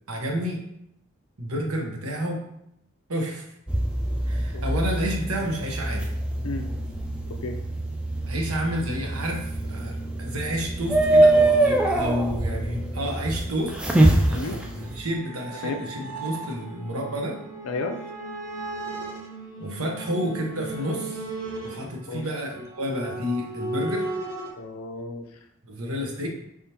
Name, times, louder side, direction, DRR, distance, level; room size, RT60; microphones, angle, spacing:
voice 1, 0.1-0.6 1.4-2.4 3.1-3.5 4.3-6.0 8.3-13.7 14.2-17.4 19.6-21.3 21.6-24.1 25.6-26.3, equal, 90° right, 0 dB, 1.0 m, -30 dB
sound 1, 3.7-15.0, right 1 dB, 5° right, 0.3 m, -24 dB
sound 2, 13.8-24.5, right 2 dB, 65° right, 1.2 m, -36 dB
voice 2, 17.6-18.0 22.1-22.2 24.6-25.3, left 3 dB, 80° left, 5 dB, 0.6 m, -32 dB
4.8 x 3.6 x 2.9 m, 0.78 s
head